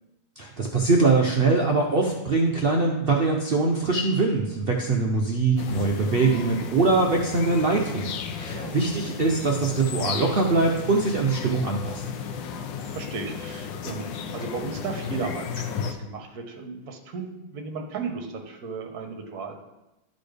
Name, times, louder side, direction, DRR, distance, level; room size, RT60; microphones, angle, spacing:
voice 1, 0.4-12.0, right 3 dB, 80° right, 1 dB, 0.5 m, -23 dB
sound 1, 5.6-15.9, left 7 dB, 85° left, 1.4 m, -34 dB
voice 2, 12.5-19.6, right 4 dB, 60° right, 4 dB, 1.4 m, -35 dB
12.0 x 4.2 x 3.4 m, 0.96 s
omnidirectional pair, 2.0 m